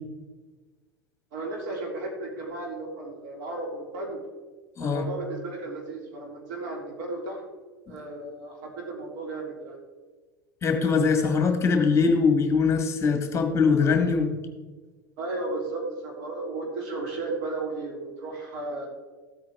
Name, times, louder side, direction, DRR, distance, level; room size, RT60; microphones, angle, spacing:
voice 1, 1.3-4.2 4.8-7.4 7.9-9.8 13.8-13.9 15.2-18.9, right 2 dB, 55° right, -1 dB, 3.1 m, -34 dB
voice 2, 10.6-14.3, left 5 dB, 25° left, 5 dB, 1.6 m, -22 dB
14.0 x 8.6 x 3.6 m, 1.4 s
figure-of-eight pair, 80°, 11 cm